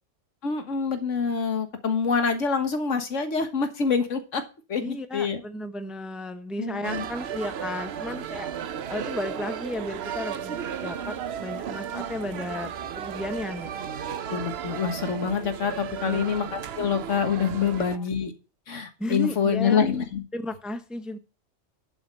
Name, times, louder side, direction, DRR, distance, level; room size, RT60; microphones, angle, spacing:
voice 1, 0.4-4.4 4.7-5.4 6.6-7.1 14.3-18.3 18.7-20.2, left 6 dB, 80° left, 7 dB, 1.8 m, -26 dB
voice 2, 4.8-8.5 8.9-13.7 16.0-16.2 17.6-18.0 19.0-19.9 20.3-21.2, left 1 dB, ahead, 8 dB, 0.7 m, -34 dB
sound 1, 6.8-18.0, right 8 dB, 60° right, 0.9 m, -34 dB
11.0 x 5.7 x 5.5 m, 0.32 s
omnidirectional pair, 1.3 m